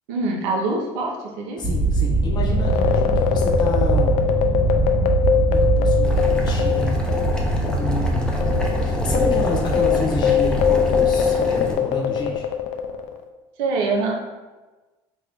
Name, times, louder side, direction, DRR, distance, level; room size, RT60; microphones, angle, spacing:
voice 1, 0.1-1.6 13.6-14.2, right 3 dB, 90° right, 1 dB, 0.7 m, -24 dB
voice 2, 1.6-4.2 5.5-6.1 6.4-7.0 7.8-8.4 8.8-12.5, left 2 dB, 40° left, 0 dB, 0.9 m, -29 dB
sound 1, 1.6-11.7, right 2 dB, 20° right, 0.9 m, -22 dB
sound 2, 2.6-7.4 7.7-7.8 8.4-13.2, left 10 dB, 80° left, 0.4 m, -22 dB
Boiling, 6.0-11.7, left 1 dB, 5° left, 0.6 m, -29 dB
3.5 x 2.6 x 3.4 m, 1.2 s
cardioid pair, 110°, 12 cm